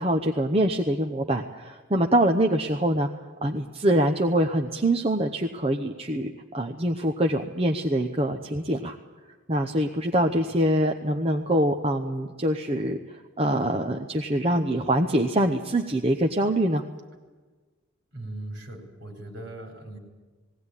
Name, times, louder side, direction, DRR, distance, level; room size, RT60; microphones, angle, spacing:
voice 1, 0.0-3.1 3.4-9.0 9.5-13.0 13.4-16.8, right 1 dB, 30° right, 3 dB, 0.9 m, -24 dB
voice 2, 18.1-20.0, right 1 dB, 55° right, 3 dB, 4.5 m, -39 dB
19.5 x 17.5 x 9.8 m, 1.4 s
head